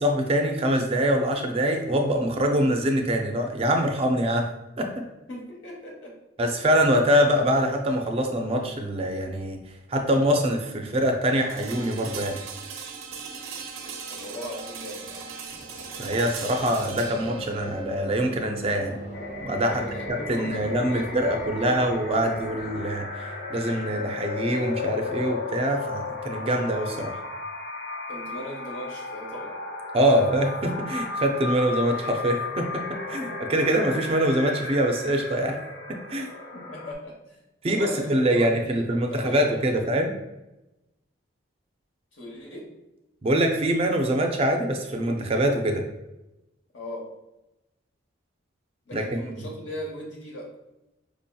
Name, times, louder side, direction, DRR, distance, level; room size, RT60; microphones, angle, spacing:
voice 1, 0.0-4.5 4.8-5.1 6.4-9.6 9.9-12.4 16.0-19.0 19.4-19.8 20.3-27.2 29.9-35.6 35.9-36.3 37.6-40.1 43.2-45.8 48.9-49.2, equal, 30° right, 3 dB, 0.3 m, -24 dB
voice 2, 5.3-6.2 14.1-15.3 19.7-21.8 28.1-29.6 33.2-33.5 36.2-37.4 37.7-40.0 42.1-42.7 46.7-47.1 48.9-50.5, left 1 dB, 70° left, -1 dB, 1.0 m, -38 dB
sound 1, 11.5-21.4, right 5 dB, 90° right, 0.5 m, -40 dB
sound 2, 15.5-22.9, equal, 20° left, 0.9 m, -40 dB
sound 3, 19.1-36.9, left 3 dB, 50° left, 0.6 m, -35 dB
4.8 x 2.7 x 2.2 m, 0.96 s
head